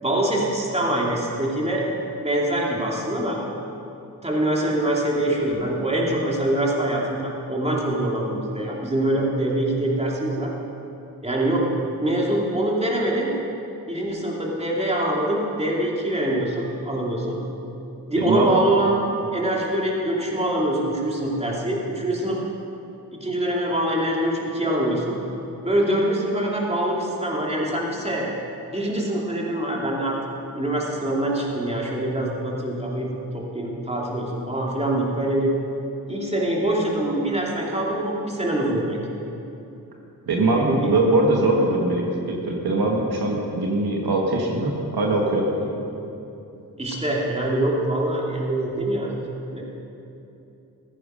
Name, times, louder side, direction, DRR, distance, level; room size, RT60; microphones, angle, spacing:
voice 1, 0.0-1.8 2.2-3.4 4.2-10.5 11.2-11.7 12.0-13.3 13.9-17.4 18.1-19.0 19.3-22.4 23.2-25.2 25.6-28.3 28.7-30.2 30.5-35.5 36.1-39.0 40.5-40.9 45.6-45.7 46.8-49.1 49.5-49.6, right 1 dB, 15° right, -3 dB, 2.9 m, -24 dB
voice 2, 18.2-18.5 40.3-45.4, right 2 dB, 70° right, -1 dB, 1.6 m, -22 dB
15.0 x 9.5 x 5.2 m, 2.9 s
cardioid pair, 50°, 39 cm